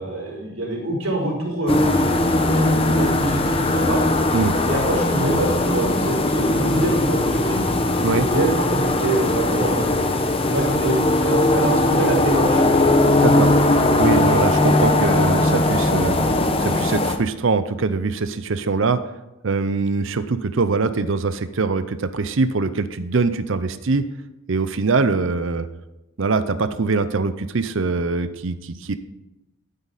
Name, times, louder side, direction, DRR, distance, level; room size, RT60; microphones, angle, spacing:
voice 1, 0.0-4.0 4.7-7.7 8.3-9.9 10.5-12.8, right 1 dB, 75° right, -4 dB, 4.9 m, -25 dB
sound 1, 1.7-17.2, left 2 dB, 25° left, 0.8 m, -19 dB
voice 2, 13.2-13.5 14.0-16.2 16.6-19.0 19.4-24.1 24.5-25.7 26.2-29.0, right 4 dB, 60° right, 11 dB, 0.6 m, -22 dB
12.0 x 9.1 x 4.1 m, 0.94 s
head